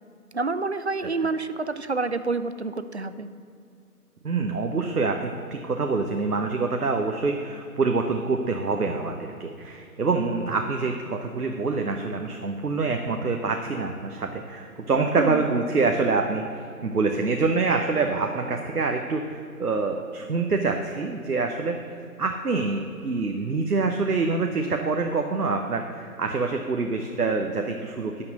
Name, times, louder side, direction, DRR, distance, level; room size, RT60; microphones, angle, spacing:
voice 1, 0.3-3.3 15.2-15.4, right 3 dB, 45° right, 12 dB, 0.5 m, -28 dB
voice 2, 4.2-16.4 16.8-21.8 22.2-28.3, right 4 dB, 70° right, 3 dB, 1.1 m, -26 dB
11.5 x 5.9 x 7.9 m, 2.5 s
figure-of-eight pair, 160°, 46 cm